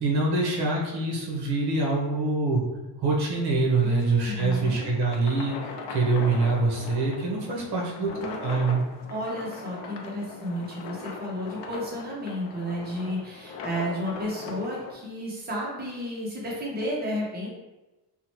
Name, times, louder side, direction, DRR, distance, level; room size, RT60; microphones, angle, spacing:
voice 1, 0.0-2.6 3.0-8.8, right 3 dB, 60° right, -2 dB, 0.8 m, -25 dB
sound 1, 3.7-14.9, left 3 dB, 70° left, 0.5 m, -40 dB
voice 2, 3.8-4.9 7.5-7.7 8.0-8.1 9.1-17.5, equal, 20° right, -4 dB, 0.7 m, -32 dB
2.7 x 2.1 x 2.9 m, 1.1 s
cardioid pair, 150°, 44 cm